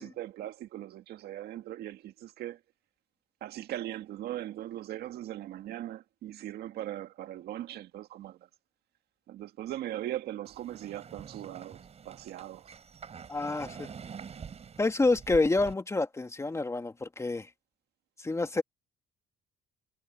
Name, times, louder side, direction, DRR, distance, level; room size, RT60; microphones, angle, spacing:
voice 1, 0.0-2.6 3.4-8.5 9.3-12.7, right 13 dB, 70° right, 1.9 m, -39 dB
sound 1, 10.4-15.7, right 6 dB, 40° right, 6.2 m, -46 dB
voice 2, 13.3-13.9 14.8-17.5 18.2-18.6, left 3 dB, 15° left, 1.9 m, -28 dB
cardioid pair, 110°, 17 cm